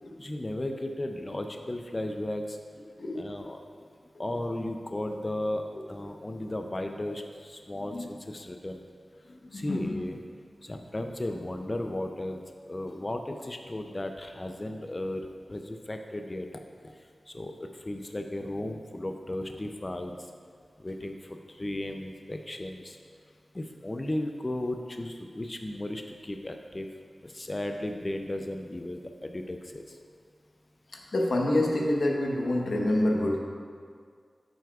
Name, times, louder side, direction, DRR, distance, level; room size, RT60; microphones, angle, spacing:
voice 1, 0.2-2.6 3.1-3.6 4.2-5.6 5.9-8.8 9.5-10.2 10.6-16.5 16.8-16.9 17.3-17.5 17.8-20.1 20.8-23.0 23.5-26.9 27.2-30.0, left 1 dB, 25° left, 4 dB, 0.4 m, -35 dB
voice 2, 3.0-3.3 7.9-8.1 9.3-10.0 31.1-33.4, left 1 dB, 70° left, 0 dB, 1.0 m, -27 dB
9.5 x 7.7 x 2.3 m, 2.1 s
wide cardioid pair, 105°, 0 cm